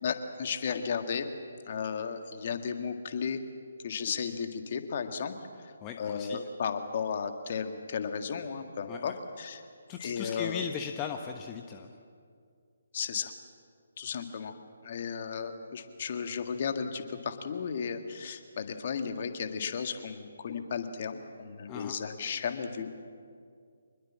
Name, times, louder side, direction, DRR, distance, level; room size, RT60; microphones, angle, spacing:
voice 1, 0.0-1.3 1.7-3.4 3.8-5.3 5.6-9.6 10.0-10.6 12.9-13.3 14.0-14.5 14.8-22.9, left 6 dB, 45° left, 7 dB, 1.9 m, -34 dB
voice 2, 5.8-6.4 8.9-9.2 9.9-11.9 21.7-22.0, left 7 dB, 20° left, 4 dB, 1.1 m, -38 dB
25.5 x 21.0 x 7.5 m, 2.2 s
figure-of-eight pair, 145°, 0 cm